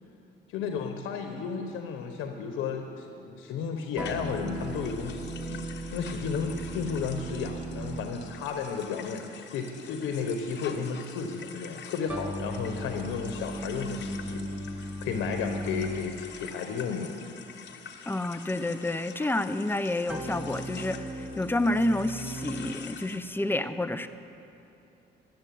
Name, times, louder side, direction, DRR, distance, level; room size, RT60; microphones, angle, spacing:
voice 1, 0.5-17.1, left 6 dB, 90° left, 5 dB, 1.0 m, -33 dB
sound 1, 4.0-23.2, left 7 dB, 60° left, 1.0 m, -47 dB
sound 2, 4.0-8.6 12.1-16.4 20.1-22.7, right 1 dB, 10° right, 1.1 m, -37 dB
voice 2, 18.1-24.1, left 1 dB, 10° left, 11 dB, 0.5 m, -29 dB
12.5 x 7.5 x 9.2 m, 2.8 s
cardioid pair, 90°, 20 cm